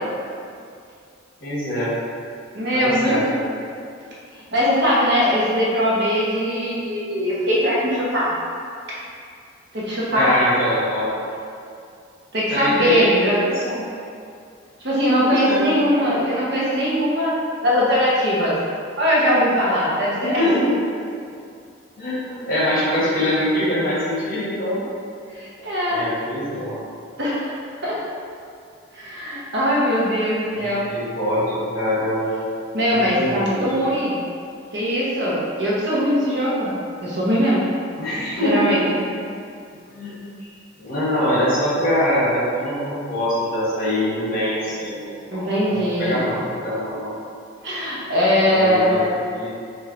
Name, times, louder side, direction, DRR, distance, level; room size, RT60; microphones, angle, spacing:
voice 1, 1.4-2.0 2.7-3.4 10.1-11.1 12.5-13.8 15.2-15.6 16.0-16.3 20.2-20.7 22.0-24.8 25.9-26.8 30.6-32.3 32.9-33.6 38.0-38.8 39.9-40.5 40.8-45.4 45.7-47.1 48.5-49.5, equal, 50° left, -8 dB, 1.1 m, -24 dB
voice 2, 2.5-3.3 4.5-8.3 8.9-9.0 9.7-10.3 12.3-13.4 14.8-17.3 17.6-18.6 19.0-20.4 25.3-26.0 27.2-28.0 28.9-30.9 32.7-34.2 34.7-36.7 37.0-37.7 38.4-38.8 45.3-46.2 47.6-49.1, equal, 60° right, -7 dB, 0.9 m, -20 dB
3.4 x 2.6 x 3.7 m, 2.4 s
head